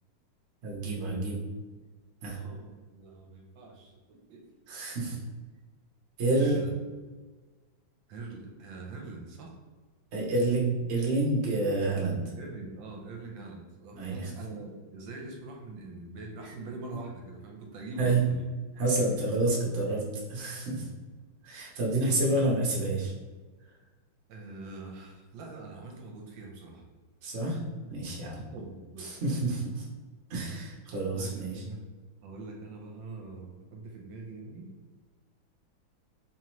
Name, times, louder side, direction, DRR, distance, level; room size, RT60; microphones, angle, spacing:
voice 1, 0.6-1.4 2.2-2.4 4.7-5.2 6.2-6.6 10.1-12.2 13.9-14.3 18.0-18.2 18.8-20.0 20.3-20.9 21.4-23.1 27.2-27.6 27.8-28.4 29.0-29.8 30.3-31.6, right 2 dB, 45° right, -4 dB, 0.9 m, -28 dB
voice 2, 2.3-4.4 6.4-6.7 8.1-9.5 12.4-18.4 24.3-26.8 28.4-29.1 31.1-31.9 32.2-34.7, right 3 dB, 75° right, 1 dB, 1.3 m, -44 dB
3.8 x 2.8 x 3.0 m, 1.3 s
omnidirectional pair, 2.2 m